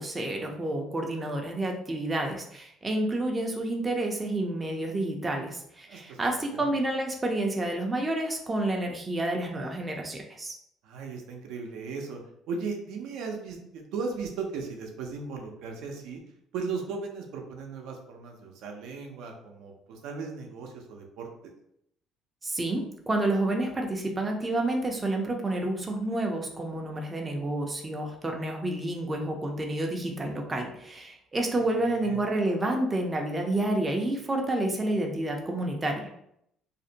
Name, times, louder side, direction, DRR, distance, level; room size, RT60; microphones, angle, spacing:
voice 1, 0.0-10.5 22.4-36.1, right 1 dB, 20° right, 2 dB, 0.4 m, -29 dB
voice 2, 5.9-6.2 6.5-6.7 10.8-12.2 12.5-16.2 16.5-21.5 31.5-32.2, right 4 dB, 80° right, 2 dB, 0.5 m, -37 dB
2.5 x 2.1 x 2.7 m, 0.73 s
cardioid pair, 120°, 0 cm